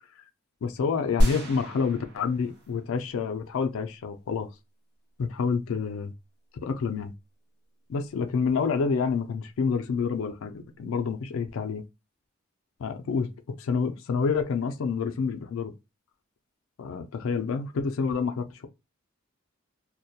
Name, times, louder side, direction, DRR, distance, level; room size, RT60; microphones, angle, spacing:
voice 1, 0.6-4.5 5.2-6.1 6.6-7.1 7.9-11.8 12.8-13.3 13.6-15.7 16.8-18.7, left 5 dB, 65° left, 0.3 m, -28 dB
sound 1, 1.2-3.1 3.5-3.6, equal, 55° right, 0.8 m, -28 dB
2.2 x 2.1 x 2.7 m
head